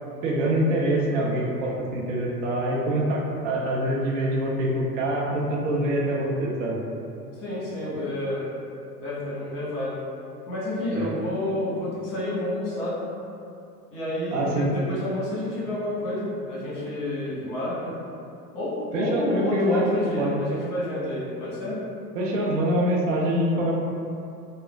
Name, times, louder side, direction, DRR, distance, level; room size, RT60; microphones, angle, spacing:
voice 1, 0.2-6.8 10.9-11.1 14.3-14.7 18.9-19.9 20.2-20.4 22.1-23.7, right 1 dB, 50° right, -3 dB, 0.6 m, -25 dB
voice 2, 7.3-8.5 9.0-10.0 10.5-12.9 13.9-17.9 18.5-21.8, left 1 dB, 40° left, -9 dB, 1.3 m, -29 dB
3.1 x 2.1 x 2.3 m, 2.5 s
figure-of-eight pair, 90°, 48 cm